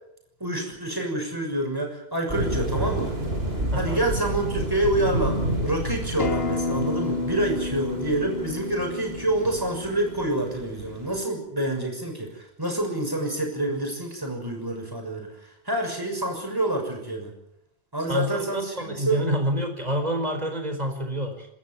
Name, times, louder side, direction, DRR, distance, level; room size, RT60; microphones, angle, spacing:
voice 1, 0.4-3.1 3.8-17.3 17.9-19.3, right 1 dB, 20° right, 2 dB, 6.4 m, -27 dB
sound 1, 2.3-11.2, right 1 dB, 70° right, 4.1 m, -30 dB
voice 2, 3.7-4.0 18.1-18.3 18.5-21.5, equal, 40° right, 5 dB, 4.6 m, -27 dB
Acoustic guitar, 6.2-11.4, left 3 dB, 65° left, 1.6 m, -32 dB
26.5 x 13.5 x 9.4 m, 0.79 s
omnidirectional pair, 1.1 m